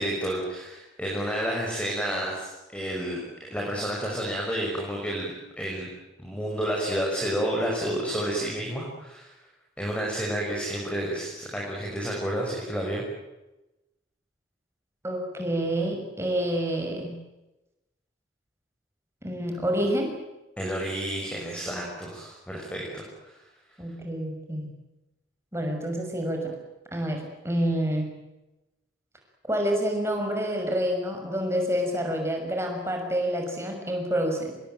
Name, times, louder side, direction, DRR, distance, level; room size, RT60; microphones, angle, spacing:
voice 1, 0.0-5.9 6.2-9.3 9.8-13.0 20.6-23.3, right 1 dB, 5° left, -2 dB, 6.2 m, -30 dB
voice 2, 15.0-17.2 19.2-20.2 23.8-24.7 25.5-26.6 26.9-28.1 29.4-34.5, equal, 15° right, 2 dB, 6.4 m, -28 dB
27.0 x 21.5 x 9.2 m, 1.0 s
head